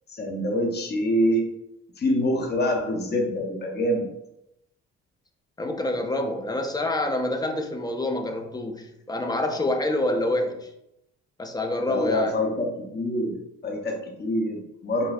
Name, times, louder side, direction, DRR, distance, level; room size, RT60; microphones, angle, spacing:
voice 1, 0.1-1.5 2.0-4.0 11.9-15.1, equal, 35° left, 1 dB, 0.8 m, -25 dB
voice 2, 5.6-10.7 11.4-12.4, left 1 dB, 15° left, 4 dB, 0.4 m, -27 dB
4.0 x 2.6 x 2.4 m, 0.83 s
cardioid pair, 90°, 30 cm